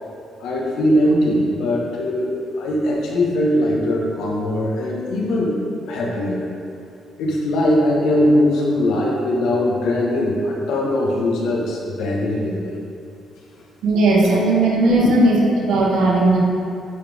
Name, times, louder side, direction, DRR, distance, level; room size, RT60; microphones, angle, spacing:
voice 1, 0.4-5.6 5.9-6.4 7.2-12.8, left 1 dB, 85° left, -2 dB, 1.2 m, -20 dB
voice 2, 13.8-16.4, right 2 dB, 85° right, -3 dB, 1.0 m, -16 dB
9.6 x 4.1 x 3.5 m, 2.5 s
cardioid pair, 90°, 0 cm